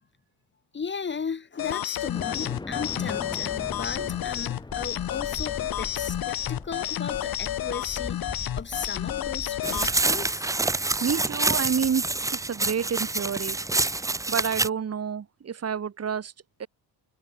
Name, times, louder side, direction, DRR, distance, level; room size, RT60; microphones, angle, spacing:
voice 1, 0.7-10.5 13.9-14.2, left 5 dB, 25° left, 1.5 m, -36 dB
sound 1, 1.6-9.9, left 12 dB, 55° left, 1.3 m, -31 dB
sound 2, 2.1-10.6, left 2 dB, 10° left, 1.6 m, -39 dB
sound 3, 9.6-14.7, right 2 dB, 10° right, 0.4 m, -27 dB
voice 2, 11.0-13.6 14.3-16.3 16.6-16.7, right 7 dB, 35° right, 3.8 m, -29 dB
cardioid pair, 180°, 42 cm